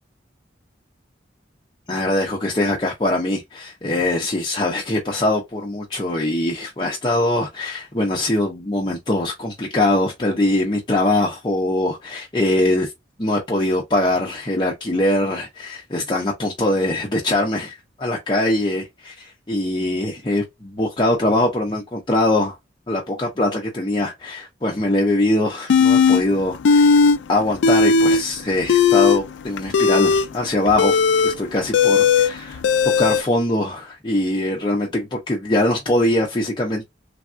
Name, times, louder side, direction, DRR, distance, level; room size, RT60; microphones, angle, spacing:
voice 1, 1.9-12.9 13.2-22.5 22.9-32.6 33.0-36.8, left 1 dB, 25° left, 0.6 m, -22 dB
sound 1, 25.7-26.2 26.6-27.2 27.4-28.2 28.6-33.2, left 5 dB, 80° left, 0.4 m, -16 dB
3.4 x 2.2 x 2.5 m
head